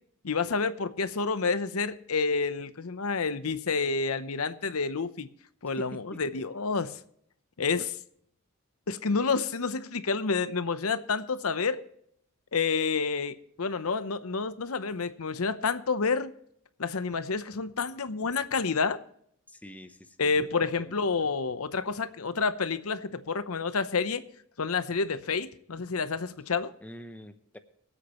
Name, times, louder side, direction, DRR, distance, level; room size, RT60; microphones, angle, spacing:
voice 1, 0.2-5.3 5.6-6.9 7.6-7.8 8.9-11.8 12.5-16.3 16.8-19.0 20.2-24.2 24.6-26.7, left 4 dB, 80° left, 12 dB, 0.8 m, -29 dB
voice 2, 5.8-6.2 7.8-7.9 19.5-21.0 26.8-27.6, equal, 5° left, 8 dB, 0.8 m, -46 dB
24.5 x 8.3 x 3.1 m, 0.68 s
head